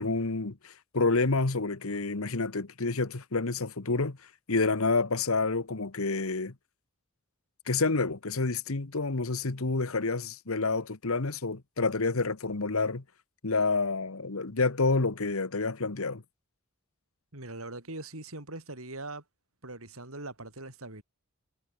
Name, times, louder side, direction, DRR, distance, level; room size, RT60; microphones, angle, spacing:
voice 1, 0.0-4.2 4.5-6.5 7.7-13.0 13.4-16.2, left 3 dB, 70° left, 1.3 m, -28 dB
voice 2, 17.3-19.2 19.6-21.0, right 2 dB, 75° right, 5.9 m, -41 dB
head